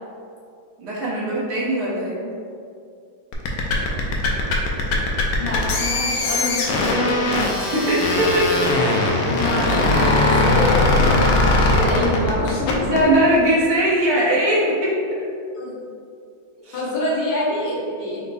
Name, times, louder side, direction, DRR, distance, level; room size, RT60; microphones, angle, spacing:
voice 1, 0.8-2.2 7.6-8.6 12.8-15.2 16.6-16.8, right 1 dB, 55° right, -7 dB, 1.3 m, -20 dB
sound 1, 3.3-13.0, left 2 dB, 75° left, 1.1 m, -20 dB
voice 2, 5.4-7.3 9.3-13.0 13.3-13.4 15.5-15.7 16.7-18.3, left 2 dB, 55° left, -7 dB, 1.4 m, -26 dB
4.5 x 2.1 x 3.9 m, 2.4 s
omnidirectional pair, 2.2 m